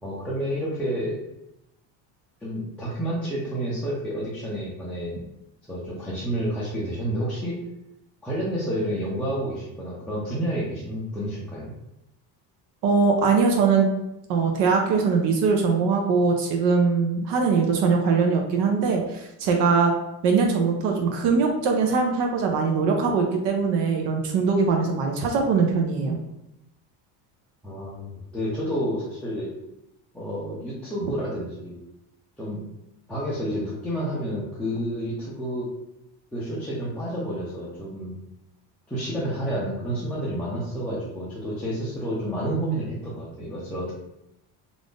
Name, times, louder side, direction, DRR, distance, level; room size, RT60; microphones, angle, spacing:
voice 1, 0.0-1.2 2.4-5.1 5.7-7.6 8.2-11.7 27.6-29.5 30.1-31.8 32.4-32.6 33.1-35.7 36.3-38.1 38.9-44.0, equal, 5° left, -9 dB, 0.4 m, -30 dB
voice 2, 12.8-13.9 14.3-19.9 20.2-26.2, right 5 dB, 80° right, 2 dB, 0.7 m, -21 dB
2.5 x 2.5 x 3.5 m, 0.88 s
cardioid pair, 155°, 42 cm